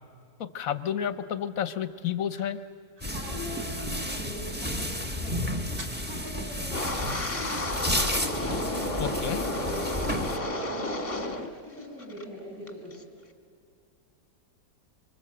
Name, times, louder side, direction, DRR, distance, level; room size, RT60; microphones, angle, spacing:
voice 1, 0.4-2.6 9.0-9.4, left 9 dB, 60° left, 13 dB, 1.1 m, -31 dB
sound 1, 2.1-4.4 4.7-4.8 5.0-5.3 5.8-7.1, right 2 dB, 70° right, 3.5 m, -50 dB
sound 2, 3.0-10.4, left 1 dB, 5° right, 1.0 m, -32 dB
voice 2, 3.1-8.1 8.4-11.3 11.6-13.0, equal, 55° right, -6 dB, 7.5 m, -41 dB
Wind, 6.7-11.5 11.8-12.2 12.7-13.0, left 1 dB, 20° left, 1.2 m, -32 dB
25.5 x 24.5 x 7.7 m, 2.3 s
omnidirectional pair, 1.9 m